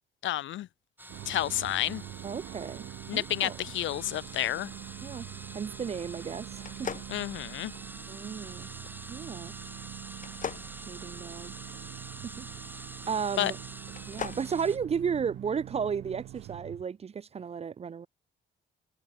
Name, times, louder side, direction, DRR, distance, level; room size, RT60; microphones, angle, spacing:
voice 1, 0.2-0.7 1.3-2.0 3.1-4.7 7.1-7.7 13.4-13.5, left 14 dB, 75° left, 0.8 m, -30 dB
sound 1, 1.0-14.8, right 1 dB, 10° right, 3.4 m, -46 dB
sound 2, 1.1-16.8, right 15 dB, 85° right, 1.5 m, -45 dB
voice 2, 2.2-2.9 3.1-3.5 5.0-5.3 5.5-6.9 8.1-8.7 9.1-9.5 10.9-11.5 12.4-12.5 13.1-13.6 14.1-18.1, right 6 dB, 30° right, 0.5 m, -34 dB
sound 3, 6.6-8.0 10.2-11.7 13.8-14.5, left 7 dB, 40° left, 1.0 m, -40 dB
cardioid pair, 90°, 20 cm